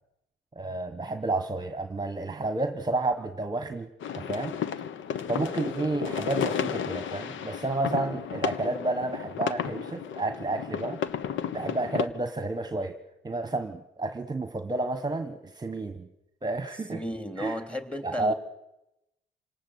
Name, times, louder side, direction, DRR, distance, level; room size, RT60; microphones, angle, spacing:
voice 1, 0.5-3.9 4.1-4.6 5.3-11.0 11.5-13.0 13.2-16.1 16.4-17.0 17.4-17.6 18.0-18.3, right 2 dB, 20° right, 8 dB, 1.4 m, -31 dB
sound 1, 4.0-12.1, left 8 dB, 75° left, 1.3 m, -33 dB
voice 2, 16.9-18.3, left 1 dB, 5° left, 8 dB, 3.3 m, -34 dB
27.5 x 19.0 x 8.2 m, 0.91 s
cardioid pair, 90°, 20 cm